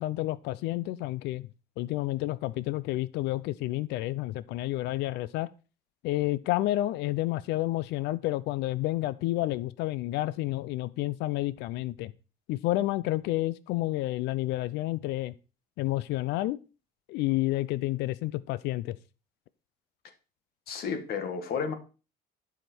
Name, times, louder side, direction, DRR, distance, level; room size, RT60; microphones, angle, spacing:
voice 1, 0.0-1.5 1.8-5.5 6.0-12.1 12.5-15.3 15.8-16.6 17.1-19.0, left 16 dB, 85° left, 18 dB, 0.5 m, -30 dB
voice 2, 20.7-21.7, left 6 dB, 65° left, 8 dB, 1.6 m, -32 dB
11.0 x 5.0 x 4.3 m, 0.33 s
cardioid pair, 110°, 17 cm